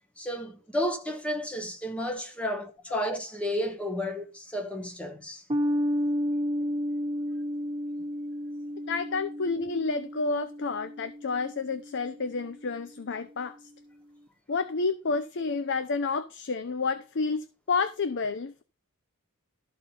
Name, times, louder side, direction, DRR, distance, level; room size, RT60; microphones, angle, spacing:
voice 1, 0.2-5.4, equal, 5° left, 1.3 m, -32 dB
sound 1, 5.5-12.2, equal, 25° right, 0.6 m, -32 dB
voice 2, 8.9-13.7 14.5-18.6, left 4 dB, 55° left, 0.6 m, -30 dB
13.0 x 4.4 x 5.3 m
head